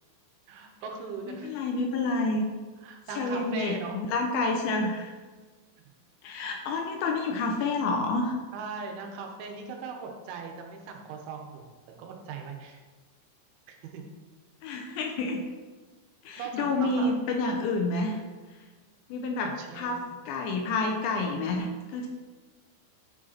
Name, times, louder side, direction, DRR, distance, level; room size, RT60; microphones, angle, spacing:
voice 1, 0.5-1.5 2.8-4.0 6.7-6.8 8.5-11.6 12.0-12.8 13.7-14.0 16.4-17.1 19.4-20.1, right 5 dB, 80° right, 3 dB, 3.3 m, -39 dB
voice 2, 1.3-2.5 3.2-5.1 6.2-8.4 14.6-15.4 16.3-18.2 19.1-22.1, left 3 dB, 85° left, 3 dB, 2.8 m, -29 dB
10.5 x 5.1 x 4.3 m, 1.3 s
omnidirectional pair, 5.6 m